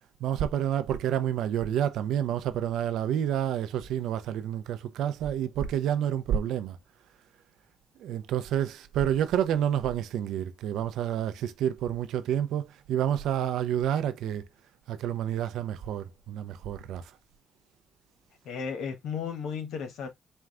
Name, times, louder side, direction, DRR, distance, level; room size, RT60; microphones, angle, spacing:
voice 1, 0.2-6.8 8.0-14.5 14.9-17.1, right 10 dB, 85° right, 0.6 m, -29 dB
voice 2, 18.4-20.1, left 6 dB, 80° left, 1.2 m, -34 dB
4.5 x 2.4 x 3.6 m
cardioid pair, 90°, 0 cm